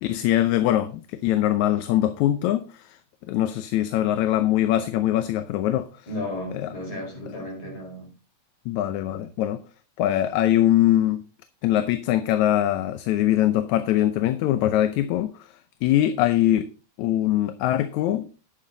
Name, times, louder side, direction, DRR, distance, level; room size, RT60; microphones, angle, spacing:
voice 1, 0.0-3.0 3.3-6.1 6.5-6.7 8.7-9.6 10.0-11.2 11.6-15.5 15.8-16.7 17.0-18.3, left 13 dB, 75° left, 2.0 m, -22 dB
voice 2, 6.1-8.1, left 1 dB, 50° left, 6.5 m, -34 dB
10.5 x 8.8 x 4.0 m
omnidirectional pair, 3.5 m